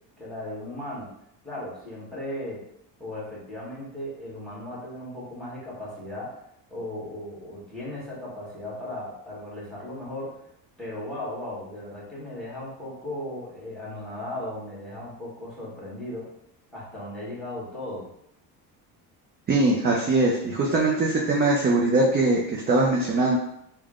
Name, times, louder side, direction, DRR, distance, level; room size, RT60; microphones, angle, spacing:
voice 1, 0.2-1.1 1.4-2.6 3.0-6.4 6.7-10.4 10.8-16.3 16.7-18.1, left 1 dB, ahead, -7 dB, 1.4 m, -36 dB
voice 2, 19.5-23.4, right 2 dB, 25° right, -2 dB, 0.4 m, -22 dB
3.5 x 2.2 x 3.6 m, 0.75 s
cardioid pair, 145°, 38 cm